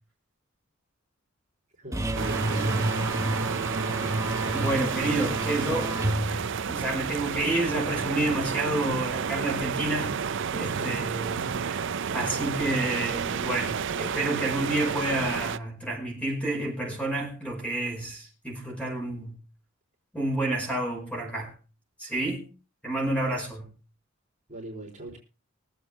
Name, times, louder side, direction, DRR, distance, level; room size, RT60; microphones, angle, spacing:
voice 1, 1.8-2.7 10.7-11.0 24.5-25.2, right 2 dB, 35° right, 3.9 m, -41 dB
sound 1, 1.9-7.3, right 1 dB, 15° right, 1.1 m, -30 dB
sound 2, 2.1-15.6, right 6 dB, 65° right, 0.5 m, -31 dB
voice 2, 4.5-6.0 6.3-10.2 10.5-19.4 20.1-21.5 22.0-22.5 22.8-23.7, right 2 dB, 5° left, 5.2 m, -30 dB
23.5 x 8.2 x 3.4 m
head